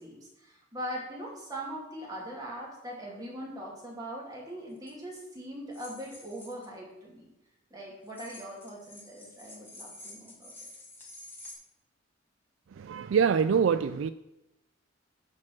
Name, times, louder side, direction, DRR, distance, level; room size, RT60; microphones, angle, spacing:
voice 1, 0.0-7.3 7.7-10.5, equal, 20° right, 2.5 m, -41 dB
sound 1, 4.8-4.9 5.7-6.7 8.1-11.5, left 2 dB, 10° left, 1.7 m, -49 dB
voice 2, 12.7-14.1, right 6 dB, 65° right, 0.3 m, -25 dB
12.0 x 4.4 x 6.0 m
head